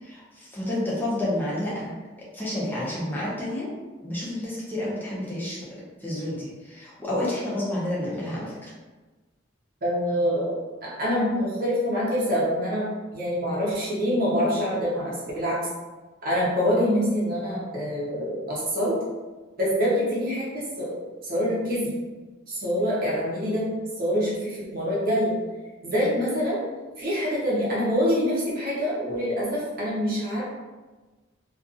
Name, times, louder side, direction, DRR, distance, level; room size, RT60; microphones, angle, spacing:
voice 1, 0.0-1.9 2.3-3.7 4.0-8.6, left 1 dB, 10° left, -7 dB, 0.7 m, -30 dB
voice 2, 9.8-15.6 16.2-19.0 19.6-20.9 21.2-21.9 22.5-23.7 24.0-25.4 25.8-26.6 27.0-30.4, equal, 50° right, -7 dB, 0.8 m, -25 dB
2.5 x 2.5 x 2.5 m, 1.2 s
head